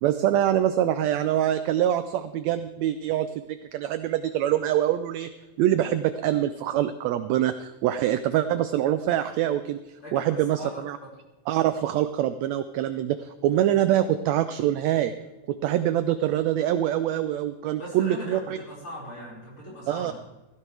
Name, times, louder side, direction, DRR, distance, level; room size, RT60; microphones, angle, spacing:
voice 1, 0.0-5.3 5.6-9.8 10.1-11.0 11.5-15.1 15.5-18.6 19.9-20.1, right 12 dB, 80° right, 11 dB, 1.6 m, -24 dB
voice 2, 10.0-10.8 17.8-20.1, equal, 40° left, -5 dB, 6.1 m, -39 dB
15.5 x 15.0 x 3.4 m, 1.1 s
omnidirectional pair, 3.6 m